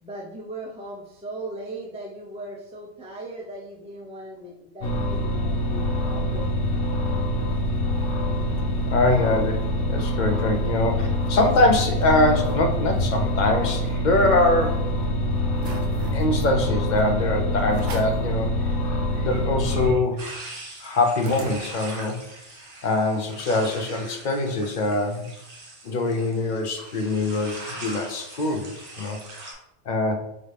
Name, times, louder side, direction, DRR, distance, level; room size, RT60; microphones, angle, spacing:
voice 1, 0.0-6.5, right 2 dB, 10° right, -2 dB, 0.3 m, -38 dB
sound 1, 4.8-19.9, left 1 dB, 85° left, 1.2 m, -25 dB
voice 2, 8.9-14.8 16.1-18.5 19.2-20.3 20.8-22.2 22.8-25.3 25.8-29.2 29.9-30.2, left 2 dB, 55° left, 4 dB, 0.6 m, -23 dB
sound 2, 11.0-11.6 12.0-12.1 12.4-12.7 13.1-14.7 15.1-15.2 15.6-16.3 17.0-17.1 17.7-18.3 18.8-18.9 19.1-22.1, right 3 dB, 85° right, 1.0 m, -42 dB
sound 3, 20.2-29.5, right 2 dB, 55° right, 1.1 m, -41 dB
4.9 x 2.7 x 3.3 m, 0.82 s
omnidirectional pair, 1.2 m